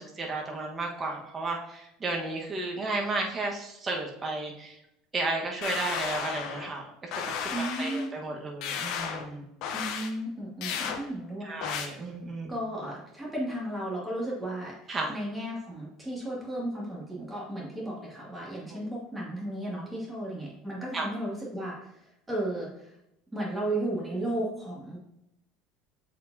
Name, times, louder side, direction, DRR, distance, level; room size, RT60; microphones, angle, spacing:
voice 1, 0.0-4.8 5.1-6.9 7.1-9.4 11.5-12.5 14.9-15.1 20.9-21.1, right 2 dB, 25° right, 1 dB, 1.4 m, -33 dB
sound 1, 5.6-6.7 7.1-8.1 8.6-9.3 9.6-10.1 10.6-11.0 11.6-11.9, left 7 dB, 65° left, 0.8 m, -33 dB
voice 2, 7.5-8.1 9.7-11.7 12.0-12.1 12.5-22.9 23.3-25.0, right 1 dB, 10° right, -5 dB, 2.3 m, -34 dB
7.2 x 4.8 x 2.8 m, 0.84 s
supercardioid pair, 110°, 0 cm